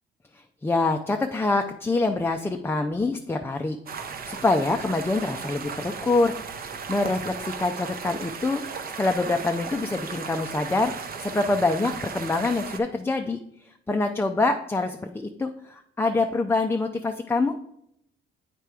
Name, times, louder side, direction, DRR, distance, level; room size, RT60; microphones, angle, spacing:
voice 1, 0.3-3.8 4.2-6.3 6.9-8.6 9.0-10.9 11.2-17.6, left 3 dB, 10° left, 5 dB, 0.4 m, -25 dB
sound 1, 3.9-12.8, right 5 dB, 50° right, 0.7 m, -36 dB
8.1 x 3.4 x 4.7 m, 0.76 s
cardioid pair, 90°, 20 cm